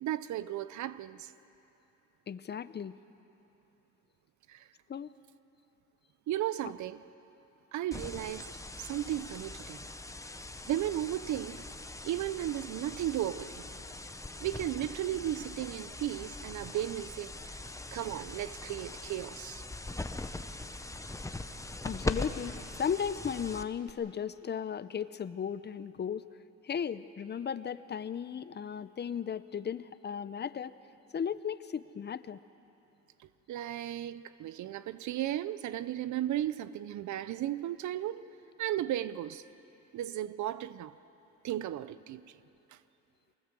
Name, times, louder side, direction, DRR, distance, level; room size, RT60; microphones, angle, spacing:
voice 1, 0.0-1.3 4.5-4.7 6.3-7.0 7.7-9.8 10.7-11.6 12.0-13.7 14.4-17.6 17.9-19.6 33.2-38.3 38.6-39.4 39.9-40.9 41.4-42.4 42.7-42.8, right 12 dB, 70° right, 0.6 m, -35 dB
voice 2, 2.3-3.0 4.9-5.1 21.8-26.2 26.6-30.7 31.1-32.4, left 7 dB, 35° left, 0.7 m, -36 dB
sound 1, 7.9-23.9, left 2 dB, 10° left, 0.9 m, -41 dB
23.5 x 19.5 x 7.6 m
cardioid pair, 90°, 30 cm